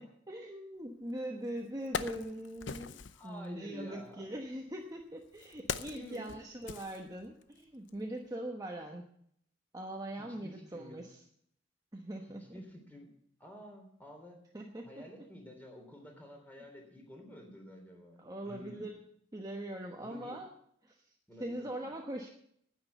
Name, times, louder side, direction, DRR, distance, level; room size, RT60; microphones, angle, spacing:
voice 1, 0.0-9.1 9.7-11.2 11.9-12.4 14.5-15.3 18.2-19.0 19.3-20.5 20.8-21.0 21.4-22.3, right 1 dB, 20° right, 1 dB, 1.1 m, -42 dB
Wood, 1.1-1.2 1.6-3.3 4.2-7.6 7.9-8.0, left 5 dB, 70° left, 0.7 m, -41 dB
voice 2, 3.1-4.3 5.9-6.4 10.1-11.0 12.3-13.1 13.4-14.4 14.8-18.9 20.0-20.4 21.3-21.9, equal, 10° left, 2 dB, 3.4 m, -50 dB
10.0 x 9.5 x 8.0 m, 0.68 s
head